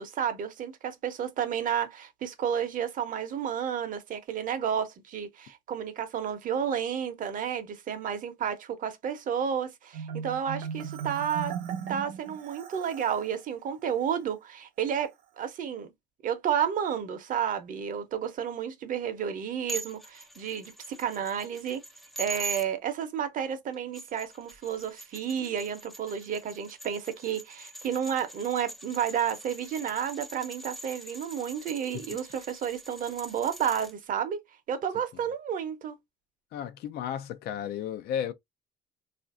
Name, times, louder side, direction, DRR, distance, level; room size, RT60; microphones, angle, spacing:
voice 1, 0.0-11.6 11.9-15.9 16.2-21.8 22.2-34.4 34.7-36.0, right 8 dB, 50° right, 0.7 m, -31 dB
Marimba xylophone, 9.9-13.3, right 7 dB, 85° right, 0.8 m, -37 dB
sound 1, 19.7-22.7 23.7-33.9, right 2 dB, ahead, 0.3 m, -43 dB
voice 2, 36.5-38.3, left 9 dB, 70° left, 0.4 m, -33 dB
3.2 x 2.5 x 2.3 m
cardioid pair, 110°, 17 cm